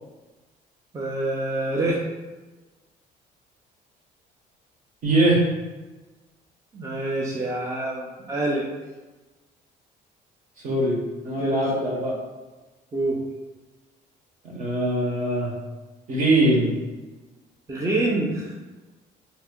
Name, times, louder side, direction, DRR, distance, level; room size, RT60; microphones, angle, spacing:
voice 1, 0.9-2.0 6.7-8.7 11.4-12.0 12.9-13.2 17.7-18.5, right 2 dB, 20° right, -3 dB, 0.5 m, -26 dB
voice 2, 5.0-5.4 10.6-11.0 11.2-12.2 14.5-15.5 16.1-16.7, right 1 dB, 50° right, -2 dB, 1.0 m, -21 dB
2.8 x 2.3 x 3.6 m, 1.2 s
cardioid pair, 110°, 17 cm